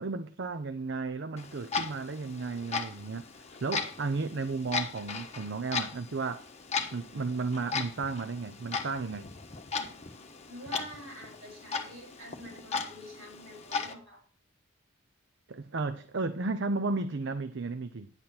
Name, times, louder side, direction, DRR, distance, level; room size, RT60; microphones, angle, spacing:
voice 1, 0.0-6.5 6.9-9.3 15.5-18.1, right 3 dB, 60° right, 0.6 m, -34 dB
Clock, 1.4-13.9, left 5 dB, 35° left, 1.2 m, -37 dB
voice 2, 10.5-14.2, right 1 dB, 90° right, 6.1 m, -47 dB
9.8 x 8.6 x 4.4 m
head